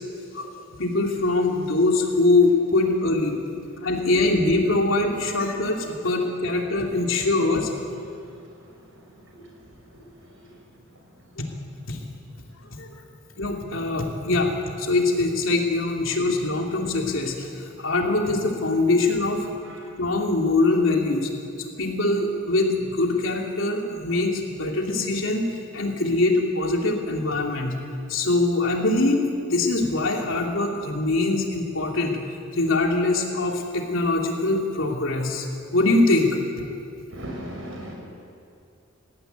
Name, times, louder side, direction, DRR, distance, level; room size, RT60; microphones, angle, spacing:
voice 1, 0.8-3.4 3.8-7.7 11.9-12.0 12.8-12.9 13.4-14.5 14.8-19.5 20.0-21.3 21.6-25.5 25.7-27.8 28.1-32.2 32.5-35.5 35.7-36.4, left 2 dB, 80° left, 1 dB, 2.9 m, -23 dB
voice 2, 9.8-10.5 19.7-19.8 37.1-37.9, right 1 dB, 80° right, 0 dB, 5.8 m, -39 dB
19.5 x 15.0 x 9.4 m, 2.5 s
head